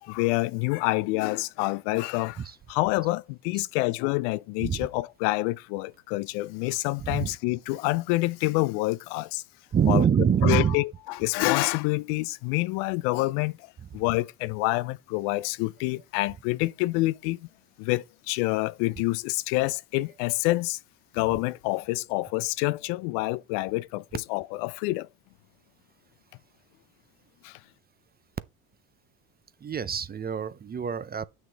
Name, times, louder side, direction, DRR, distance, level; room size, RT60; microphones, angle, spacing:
voice 1, 0.0-2.4 2.7-9.4 9.9-10.0 10.4-17.5 17.8-20.8 21.1-25.1 27.4-27.6, left 21 dB, 70° left, 0.6 m, -27 dB
voice 2, 7.0-7.4 9.7-10.7 29.6-31.2, right 8 dB, 20° right, 0.5 m, -25 dB
7.5 x 6.3 x 3.4 m
supercardioid pair, 85°, 46 cm